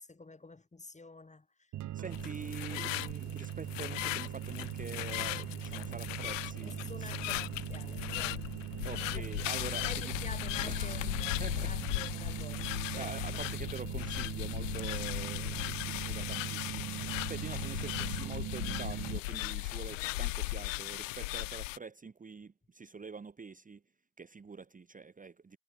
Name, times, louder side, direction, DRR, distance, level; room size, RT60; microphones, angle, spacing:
voice 1, 0.0-1.7 6.6-8.4 8.9-9.5 9.8-13.4, left 3 dB, 20° left, 4.1 m, -49 dB
sound 1, 1.7-19.2, right 13 dB, 45° right, 1.2 m, -40 dB
voice 2, 1.9-7.2 8.8-10.2 10.7-11.7 12.9-23.8 24.2-25.6, right 5 dB, 20° right, 1.3 m, -46 dB
sound 2, 2.1-21.8, left 21 dB, 75° left, 0.9 m, -37 dB
figure-of-eight pair, 50°, 39 cm